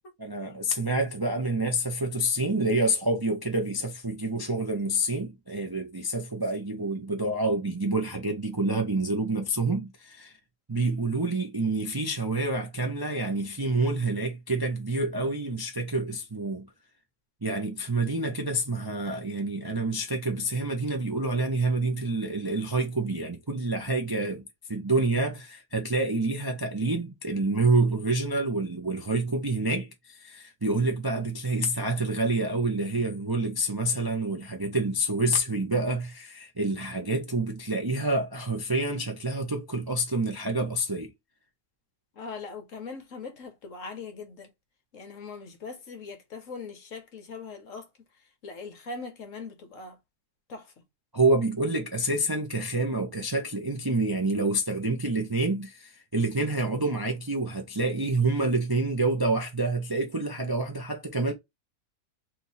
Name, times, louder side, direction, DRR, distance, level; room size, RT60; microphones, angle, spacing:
voice 1, 0.2-10.3 10.7-16.7 17.4-41.1 51.1-61.3, right 2 dB, 20° right, 0.6 m, -28 dB
voice 2, 42.1-44.5 44.9-50.0 50.5-50.8, left 4 dB, 55° left, 1.3 m, -41 dB
3.5 x 2.9 x 4.1 m
omnidirectional pair, 1.7 m